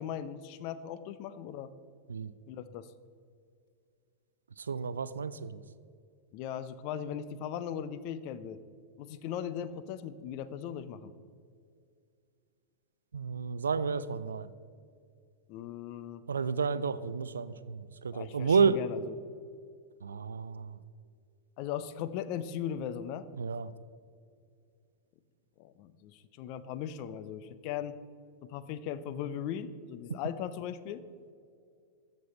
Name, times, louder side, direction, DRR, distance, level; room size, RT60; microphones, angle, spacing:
voice 1, 0.0-1.7 2.5-2.9 6.3-8.6 9.0-11.1 15.5-16.2 18.1-19.2 21.6-23.3 25.6-28.0 28.4-31.0, left 9 dB, 45° left, 13 dB, 0.5 m, -38 dB
voice 2, 4.7-5.6 13.1-14.5 16.3-18.8 20.0-20.7 23.4-23.7, right 5 dB, 70° right, 16 dB, 0.3 m, -30 dB
14.0 x 5.4 x 4.0 m, 2.2 s
figure-of-eight pair, 90°, 0 cm